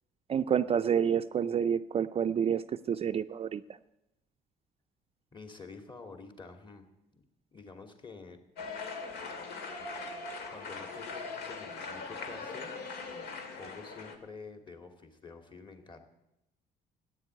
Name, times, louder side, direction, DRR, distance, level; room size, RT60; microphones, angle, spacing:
voice 1, 0.3-3.6, right 8 dB, 35° right, 10 dB, 0.5 m, -28 dB
voice 2, 5.3-6.9 7.1-7.2 7.5-8.4 10.5-16.0, left 4 dB, 30° left, 6 dB, 2.5 m, -49 dB
sound 1, 8.6-14.2, left 4 dB, 70° left, 2.6 m, -40 dB
15.0 x 9.3 x 9.5 m, 0.90 s
cardioid pair, 110°, 17 cm